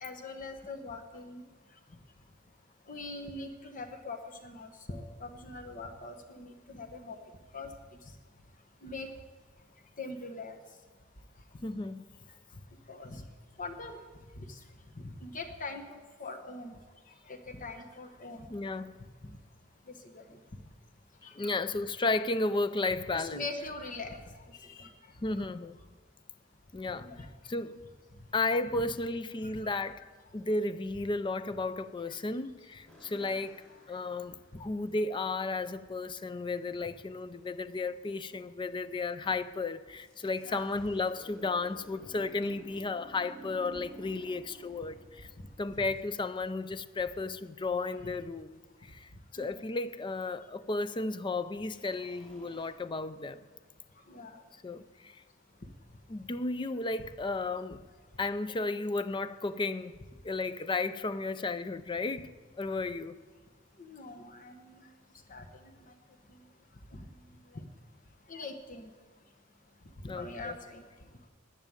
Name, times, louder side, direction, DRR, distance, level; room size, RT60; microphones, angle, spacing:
voice 1, 0.0-1.4 2.9-7.2 7.5-7.7 8.0-8.1 8.8-9.1 10.0-10.5 12.9-13.2 13.6-14.0 14.3-14.6 14.9-16.8 17.2-18.5 19.2-19.4 19.9-20.4 21.2-21.5 23.1-24.9 25.4-25.5 27.0-27.3 28.8-28.9 29.4-29.5 32.1-32.2 33.1-33.4 40.4-40.7 45.4-45.5 49.3-49.7 54.1-54.4 63.8-64.9 65.3-65.9 66.9-67.1 67.5-67.6 68.3-68.9 70.0-70.8, left 3 dB, 40° left, 1.2 m, -43 dB
voice 2, 11.6-12.1 18.5-18.9 21.3-23.4 25.2-25.8 26.7-27.1 27.4-27.8 28.3-30.1 30.3-33.6 33.9-45.3 45.6-53.4 54.6-55.2 56.1-57.8 58.2-60.0 60.2-62.3 62.6-63.2 70.1-70.6, left 3 dB, 25° left, 0.4 m, -33 dB
sound 1, 32.8-35.0 40.0-46.3 51.7-52.7, equal, 5° left, 4.7 m, -54 dB
10.5 x 10.5 x 8.9 m
head